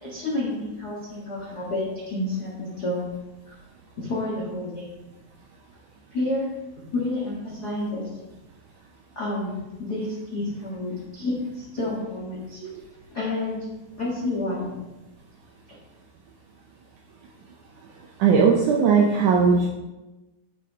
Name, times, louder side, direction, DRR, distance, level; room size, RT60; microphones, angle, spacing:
voice 1, 0.0-3.1 3.5-3.6 4.0-4.8 6.1-6.5 6.9-8.1 9.1-12.6 13.1-13.6 14.0-14.7, left 2 dB, 45° left, -6 dB, 1.3 m, -29 dB
voice 2, 18.2-19.7, right 5 dB, 85° right, 0 dB, 1.7 m, -18 dB
8.9 x 7.3 x 3.6 m, 1.1 s
omnidirectional pair, 4.5 m